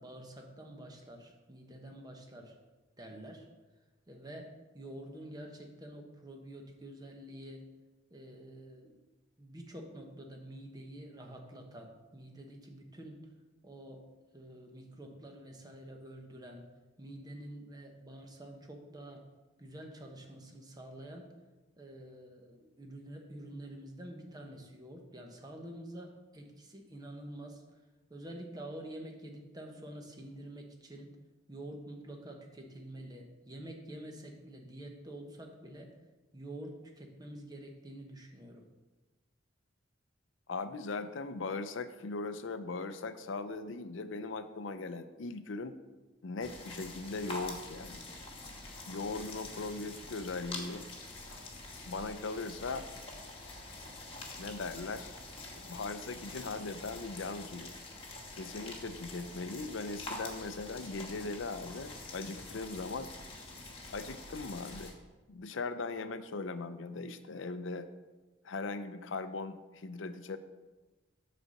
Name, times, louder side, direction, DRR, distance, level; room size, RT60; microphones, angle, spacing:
voice 1, 0.0-2.6 3.0-3.5 4.1-7.7 8.1-8.9 9.4-13.3 13.6-14.0 14.3-16.7 17.0-19.2 19.6-21.3 21.8-27.6 28.1-31.1 31.5-36.0 36.3-38.6, right 1 dB, 20° right, 2 dB, 1.0 m, -48 dB
voice 2, 40.5-45.8 46.2-48.0 48.9-50.9 51.9-52.9 54.4-55.1 55.5-57.7 58.3-63.1 63.9-64.9 65.3-67.9 68.4-70.4, left 3 dB, 70° left, 11 dB, 0.5 m, -39 dB
sound 1, 46.4-64.9, left 2 dB, 30° left, 1.3 m, -46 dB
8.1 x 4.2 x 6.4 m, 1.2 s
head